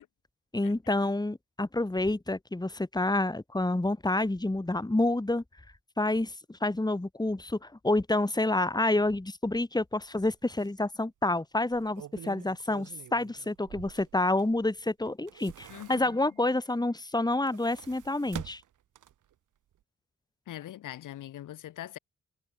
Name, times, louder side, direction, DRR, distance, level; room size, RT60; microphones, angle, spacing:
voice 1, 0.5-5.4 6.0-18.6, left 2 dB, 15° left, 2.3 m, -28 dB
sound 1, 10.0-10.2 10.6-10.7 11.6-14.7 15.1-16.4 17.2-19.3 19.7-19.8, right 11 dB, 75° right, 4.0 m, -47 dB
voice 2, 15.7-16.2 20.5-22.0, left 12 dB, 80° left, 3.4 m, -42 dB
supercardioid pair, 45°, 31 cm